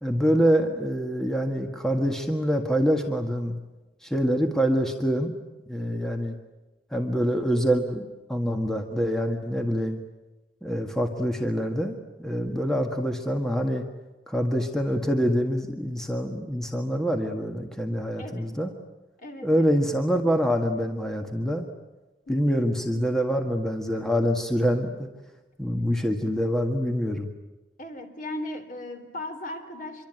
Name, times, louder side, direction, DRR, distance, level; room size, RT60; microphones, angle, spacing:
voice 1, 0.0-3.6 4.0-5.3 5.7-6.4 6.9-10.0 10.6-13.8 14.3-18.7 19.4-21.7 22.3-25.1 25.6-27.3, equal, 5° left, 4 dB, 1.7 m, -25 dB
voice 2, 19.2-19.8 22.3-22.7 27.8-30.1, left 1 dB, 50° left, 6 dB, 3.5 m, -37 dB
26.5 x 23.5 x 9.2 m, 1.1 s
head